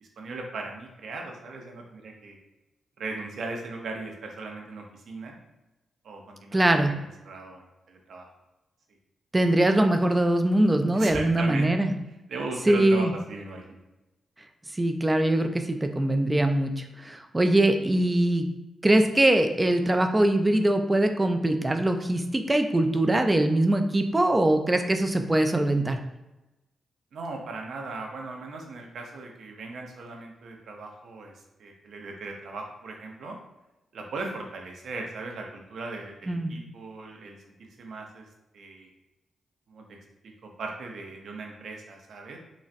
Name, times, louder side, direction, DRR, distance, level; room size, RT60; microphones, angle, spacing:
voice 1, 0.0-2.4 3.0-5.4 6.0-6.6 6.9-7.0 7.3-8.3 10.9-11.9 12.3-13.8 27.1-31.3 31.6-33.4 33.9-38.3 38.5-38.9 39.7-39.8 40.4-42.4, right 3 dB, 75° right, 1 dB, 0.6 m, -38 dB
voice 2, 6.5-6.9 9.3-11.9 12.7-13.1 14.7-18.5 18.8-26.0 36.3-36.5, right 1 dB, 20° right, 6 dB, 0.3 m, -22 dB
3.9 x 2.0 x 2.5 m, 1.0 s
cardioid pair, 80°, 0 cm